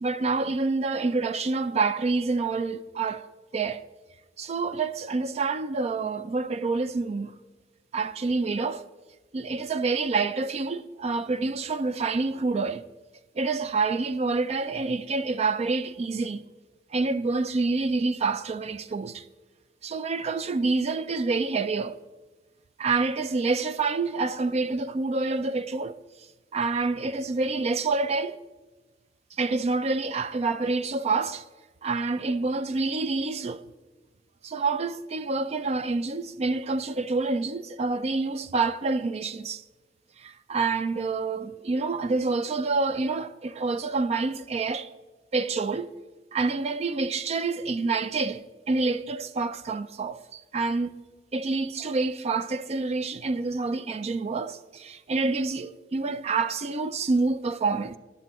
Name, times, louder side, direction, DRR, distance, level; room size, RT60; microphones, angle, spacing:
voice 1, 0.0-3.3 3.5-3.8 4.4-7.4 7.9-8.8 9.3-12.8 13.4-16.4 16.9-19.2 19.8-22.0 22.8-26.0 26.5-28.4 29.4-31.4 31.8-33.6 34.4-39.6 40.2-44.9 45.3-45.9 46.3-51.0 51.3-58.0, right 3 dB, 35° right, 0.4 m, -27 dB
20.0 x 11.0 x 3.0 m
head